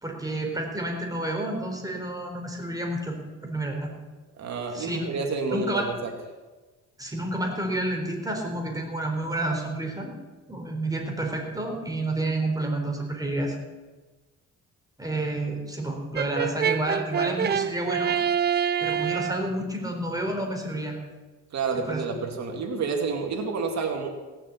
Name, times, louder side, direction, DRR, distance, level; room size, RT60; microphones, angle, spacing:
voice 1, 0.0-3.2 3.4-3.9 4.7-5.2 5.5-5.9 7.0-10.1 10.5-13.6 15.0-18.1 18.8-21.0 21.7-22.0, right 1 dB, 10° right, 1 dB, 4.1 m, -30 dB
voice 2, 4.4-6.1 21.5-24.1, right 4 dB, 65° right, 3 dB, 2.3 m, -29 dB
Brass instrument, 16.2-19.5, right 8 dB, 35° right, 0.4 m, -26 dB
17.5 x 7.2 x 8.4 m, 1.2 s
cardioid pair, 90°, 30 cm